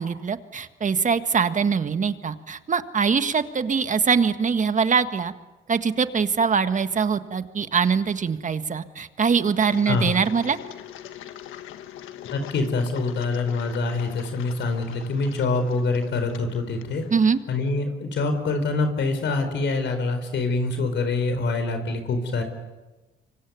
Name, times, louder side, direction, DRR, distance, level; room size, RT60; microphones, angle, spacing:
voice 1, 0.0-5.3 5.7-10.6 17.1-17.4, right 6 dB, 40° right, 10 dB, 1.7 m, -23 dB
Engine, 9.6-17.4, left 11 dB, 90° left, 1.6 m, -42 dB
voice 2, 12.3-17.0 17.5-22.4, left 3 dB, 65° left, 7 dB, 4.4 m, -25 dB
25.5 x 24.5 x 9.5 m, 1.1 s
cardioid pair, 90°, 20 cm